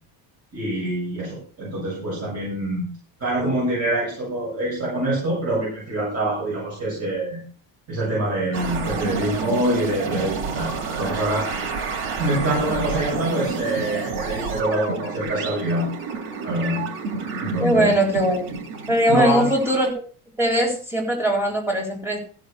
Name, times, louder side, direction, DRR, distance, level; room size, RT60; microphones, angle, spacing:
voice 1, 0.5-2.9 3.2-7.4 7.9-11.5 12.2-15.9 16.4-16.8 17.4-17.9 19.1-19.5, right 1 dB, 30° right, -6 dB, 7.3 m, -25 dB
sound 1, 8.5-19.9, right 4 dB, 75° right, 4.0 m, -30 dB
voice 2, 17.6-18.5 18.9-20.0 20.4-22.2, right 1 dB, 5° right, -1 dB, 3.8 m, -20 dB
15.0 x 5.6 x 6.7 m, 0.40 s
cardioid pair, 160°, 50 cm